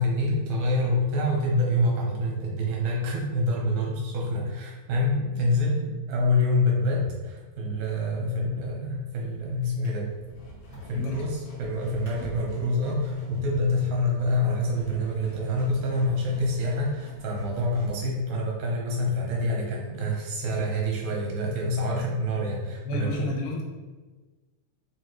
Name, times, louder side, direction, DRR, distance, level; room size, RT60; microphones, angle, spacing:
voice 1, 0.0-10.1 10.9-23.3, left 1 dB, 70° right, -2 dB, 2.1 m, -26 dB
Drawer open or close, 8.8-9.1 9.6-14.8 15.5-15.7, right 1 dB, 45° left, 0.5 m, -48 dB
sound 1, 9.2-18.2, equal, 65° left, 1.6 m, -46 dB
voice 2, 22.8-23.6, left 2 dB, 85° left, -1 dB, 2.2 m, -30 dB
4.8 x 2.8 x 3.0 m, 1.3 s
omnidirectional pair, 3.6 m